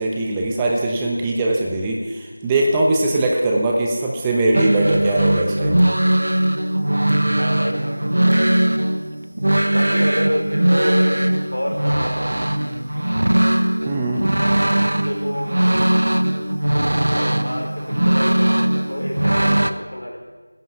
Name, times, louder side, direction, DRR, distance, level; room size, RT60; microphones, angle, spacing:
voice 1, 0.0-5.8 13.9-14.2, right 2 dB, 10° right, -2 dB, 0.9 m, -21 dB
sound 1, 4.5-19.7, right 1 dB, 65° right, 0.9 m, -19 dB
voice 2, 7.3-8.0 9.7-12.3 15.1-15.6 17.1-20.2, equal, 75° left, 0 dB, 4.5 m, -28 dB
19.0 x 10.5 x 5.8 m, 1.3 s
figure-of-eight pair, 170°, 0 cm